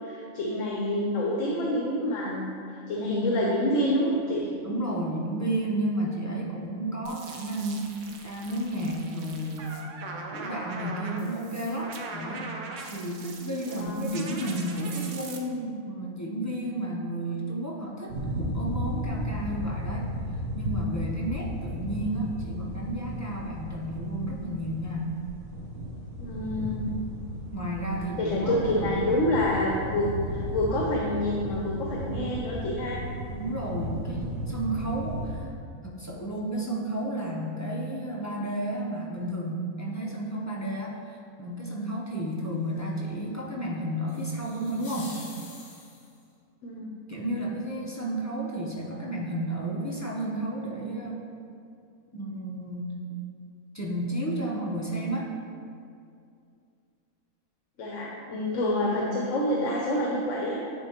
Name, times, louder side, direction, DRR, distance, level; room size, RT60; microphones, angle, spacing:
voice 1, 0.0-4.5 13.6-14.3 26.2-26.9 28.2-33.0 46.6-46.9 57.8-60.6, left 1 dB, 70° left, -3 dB, 1.0 m, -27 dB
voice 2, 4.6-10.0 10.3-12.5 12.9-20.1 20.5-25.1 27.5-29.0 33.3-35.5 35.8-45.2 47.1-51.2 52.1-53.0 53.7-55.3, right 1 dB, 30° left, -4 dB, 0.3 m, -32 dB
sound 1, 7.1-15.4, right 3 dB, 70° right, 1.0 m, -41 dB
sound 2, 18.1-35.4, equal, 90° right, 1.2 m, -34 dB
sound 3, 44.1-46.3, left 3 dB, 45° left, 1.1 m, -46 dB
9.8 x 3.7 x 2.9 m, 2.4 s
omnidirectional pair, 1.4 m